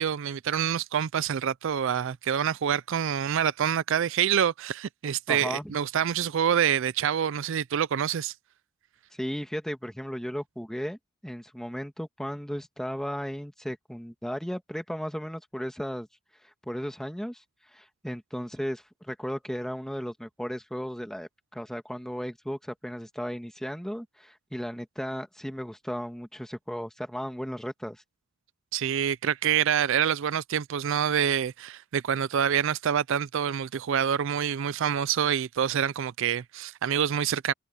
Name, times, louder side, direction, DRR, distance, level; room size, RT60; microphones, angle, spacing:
voice 1, 0.0-8.3 28.7-37.5, right 8 dB, 65° right, 0.4 m, -26 dB
voice 2, 5.3-5.7 9.1-11.0 11.2-16.1 16.6-17.4 17.7-28.0, equal, ahead, 1.7 m, -35 dB
head